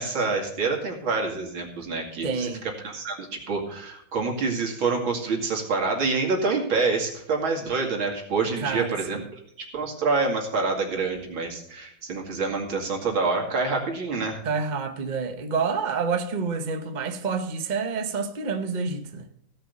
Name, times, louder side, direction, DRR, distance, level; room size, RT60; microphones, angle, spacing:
voice 1, 0.0-2.5 2.8-9.4 9.7-14.4, right 4 dB, 75° right, 3.2 m, -27 dB
voice 2, 2.2-2.7 8.6-9.3 14.4-19.3, right 5 dB, 35° right, 0.7 m, -28 dB
16.5 x 5.7 x 6.8 m
omnidirectional pair, 2.2 m